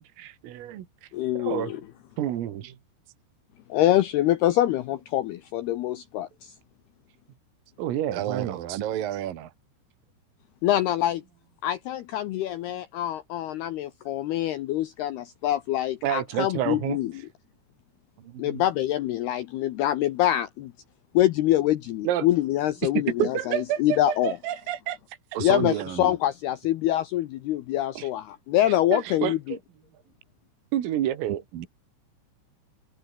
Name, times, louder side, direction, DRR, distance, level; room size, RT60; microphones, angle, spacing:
voice 1, 0.0-1.1 1.4-1.7 2.2-2.7 7.8-8.8 16.0-17.0 22.0-22.3 23.2-25.0 28.0-28.1 28.7-29.6 30.7-31.7, right 11 dB, 80° right, 4.9 m, -29 dB
voice 2, 1.1-1.8 3.7-6.5 10.6-11.2 11.6-17.1 18.4-20.7 21.1-24.4 25.4-29.6, left 13 dB, 80° left, 2.3 m, -25 dB
voice 3, 8.1-9.5 18.2-18.6 25.3-26.1 31.5-31.7, right 11 dB, 60° right, 2.7 m, -31 dB
omnidirectional pair, 5.9 m